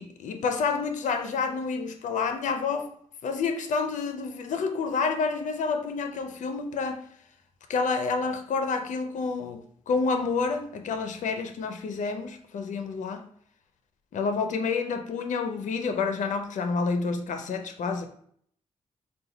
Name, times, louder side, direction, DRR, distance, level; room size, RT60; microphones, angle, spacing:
voice 1, 0.0-2.9 3.2-7.0 7.7-13.2 14.1-18.1, left 4 dB, 80° left, 0.5 m, -29 dB
4.0 x 2.2 x 3.9 m
cardioid pair, 80°, 13 cm